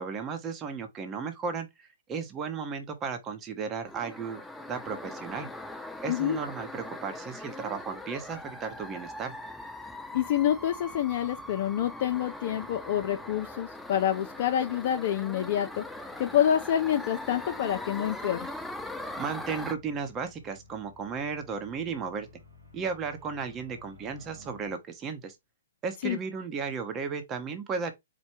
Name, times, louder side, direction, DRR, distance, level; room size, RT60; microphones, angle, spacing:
voice 1, 0.0-4.4 4.7-5.5 6.0-9.3 19.2-22.3 22.7-25.3 25.8-27.9, right 5 dB, 20° right, 0.9 m, -34 dB
sound 1, 3.9-19.8, left 1 dB, ahead, 0.5 m, -41 dB
voice 2, 6.1-6.4 10.1-15.8 16.2-18.5 26.0-26.2, left 10 dB, 50° left, 0.5 m, -27 dB
sound 2, 10.8-24.7, left 3 dB, 85° right, 2.2 m, -57 dB
4.5 x 2.2 x 4.4 m
hypercardioid pair, 145°, 0 cm